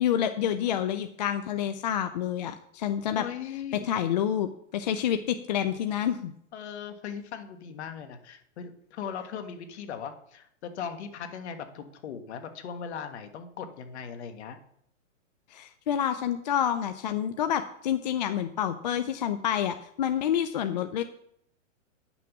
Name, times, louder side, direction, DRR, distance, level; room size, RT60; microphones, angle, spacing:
voice 1, 0.0-3.2 3.9-6.3 15.5-21.0, left 9 dB, 35° left, 9 dB, 0.4 m, -28 dB
voice 2, 3.2-3.9 6.5-14.6, left 7 dB, 55° left, 7 dB, 1.5 m, -39 dB
9.7 x 6.1 x 5.9 m, 0.71 s
hypercardioid pair, 145°, 39 cm